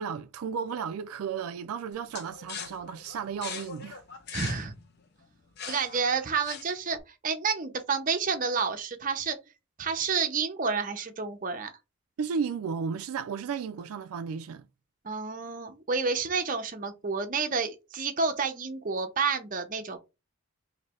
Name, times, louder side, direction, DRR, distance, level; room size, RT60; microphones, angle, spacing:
voice 1, 0.0-4.0 12.2-14.7, right 6 dB, 80° right, 0.3 m, -34 dB
sound 1, 2.1-7.0, left 6 dB, 50° left, 0.6 m, -41 dB
voice 2, 4.3-4.7 5.7-7.0 7.2-9.4 9.8-11.7 15.0-20.0, right 5 dB, 35° right, 0.6 m, -29 dB
3.2 x 2.7 x 4.2 m
head